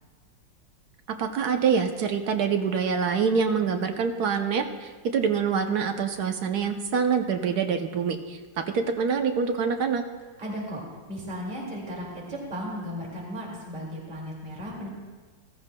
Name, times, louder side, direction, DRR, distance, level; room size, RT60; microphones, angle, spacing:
voice 1, 1.2-10.0, right 6 dB, 65° right, 6 dB, 1.1 m, -25 dB
voice 2, 10.4-10.8 11.1-14.9, equal, 25° right, -3 dB, 2.3 m, -35 dB
15.5 x 14.0 x 2.2 m, 1.4 s
omnidirectional pair, 2.0 m